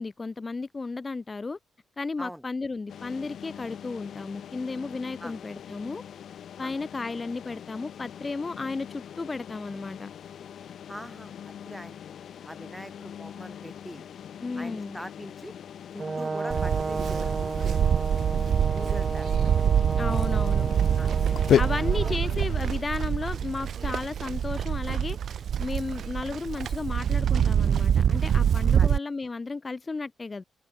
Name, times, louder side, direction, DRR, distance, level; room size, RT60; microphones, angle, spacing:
voice 1, 0.0-1.6 2.0-6.0 6.6-10.1 14.4-15.0 20.0-20.7 21.6-25.2 25.6-30.4, left 3 dB, 25° left, 1.4 m, -33 dB
sound 1, 2.9-22.8, left 9 dB, 65° left, 5.3 m, -36 dB
voice 2, 10.9-12.0 12.4-14.1 14.5-15.6 15.9-18.0 18.7-19.3 20.1-20.2 21.0-21.1 21.8-22.2 28.7-29.0, equal, ahead, 2.1 m, -43 dB
Brass instrument, 16.0-22.1, right 4 dB, 30° right, 0.9 m, -33 dB
Livestock farm animals working animals, 16.5-29.0, right 8 dB, 65° right, 1.1 m, -25 dB
cardioid pair, 115°, 0 cm